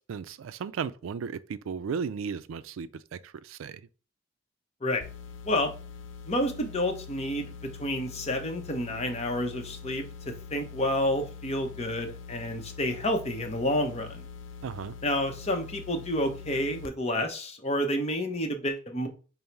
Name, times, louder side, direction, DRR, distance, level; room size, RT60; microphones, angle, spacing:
voice 1, 0.1-3.8 14.6-14.9, right 6 dB, 80° right, 0.3 m, -35 dB
sound 1, 5.0-16.9, left 5 dB, 65° left, 0.4 m, -44 dB
voice 2, 6.3-14.2 15.0-19.1, left 1 dB, 30° left, 0.7 m, -29 dB
5.3 x 2.0 x 4.4 m
head